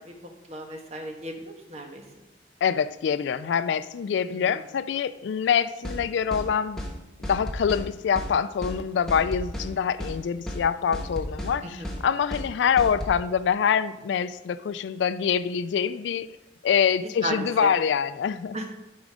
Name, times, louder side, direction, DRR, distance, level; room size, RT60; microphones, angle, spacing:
voice 1, 0.0-2.0 4.3-4.6 11.6-11.9 17.2-17.7 18.5-18.7, right 1 dB, 35° right, 3 dB, 1.2 m, -35 dB
voice 2, 2.6-6.8 7.2-16.3 16.6-18.6, left 7 dB, 80° left, 15 dB, 0.3 m, -25 dB
sound 1, 5.8-6.0 6.3-6.5 6.8-6.9 7.2-7.9 8.2-8.3 8.6-8.8 9.1-9.7 10.0-10.2 10.5-10.6 10.9-11.5 11.8-12.0 12.3-12.5 12.8-13.2, left 1 dB, 5° left, 1.2 m, -33 dB
11.0 x 5.1 x 5.0 m, 1.0 s
head